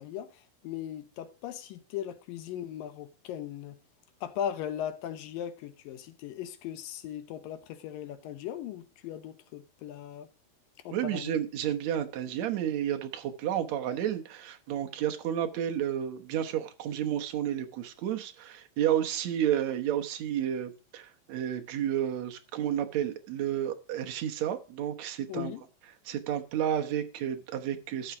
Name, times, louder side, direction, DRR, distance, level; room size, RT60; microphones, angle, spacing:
voice 1, 0.0-3.8 4.2-10.3 10.8-11.4 25.3-25.6, left 10 dB, 75° left, 2.5 m, -38 dB
voice 2, 10.9-25.5 26.1-28.2, right 10 dB, 65° right, 2.0 m, -31 dB
13.0 x 7.2 x 5.0 m
omnidirectional pair, 4.3 m